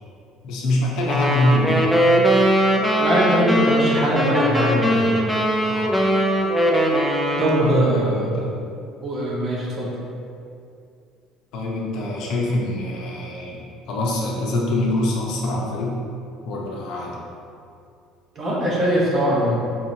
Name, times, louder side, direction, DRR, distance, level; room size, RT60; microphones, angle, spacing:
voice 1, 0.4-2.0 5.7-6.0 7.6-8.6 11.5-16.0 16.4-17.3, left 1 dB, 65° left, -3 dB, 0.7 m, -24 dB
sound 1, 1.0-7.9, equal, ahead, 0.4 m, -20 dB
voice 2, 3.0-5.1 7.4-8.4 9.0-9.9 18.4-19.6, equal, 35° right, -5 dB, 0.9 m, -21 dB
4.7 x 2.9 x 2.7 m, 2.5 s
cardioid pair, 135°, 0 cm